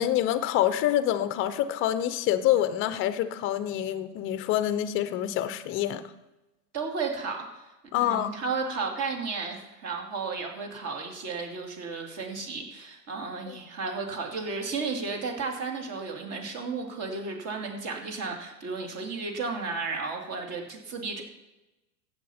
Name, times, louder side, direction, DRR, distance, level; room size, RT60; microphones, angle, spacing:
voice 1, 0.0-6.0 7.9-8.3 13.5-13.6, left 12 dB, 25° left, 13 dB, 0.7 m, -26 dB
voice 2, 6.7-7.6 8.0-21.2, right 4 dB, 30° right, 3 dB, 2.4 m, -33 dB
14.5 x 8.7 x 4.3 m, 1.0 s
hypercardioid pair, 125°, 49 cm